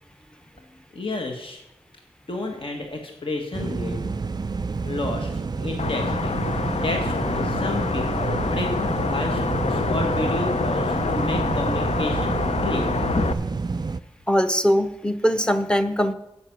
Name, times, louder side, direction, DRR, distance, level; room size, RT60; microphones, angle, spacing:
voice 1, 0.9-1.6 2.3-4.0 4.6-5.3 5.6-6.5 6.8-12.9 13.1-13.3, left 2 dB, 55° left, 2 dB, 1.6 m, -30 dB
sound 1, 3.5-14.0, right 4 dB, 40° right, 0.4 m, -29 dB
sound 2, 5.8-13.3, left 4 dB, 75° left, 0.6 m, -26 dB
voice 2, 14.3-16.1, equal, 10° left, 10 dB, 0.8 m, -21 dB
9.8 x 8.5 x 6.1 m, 0.88 s
wide cardioid pair, 90°, 11 cm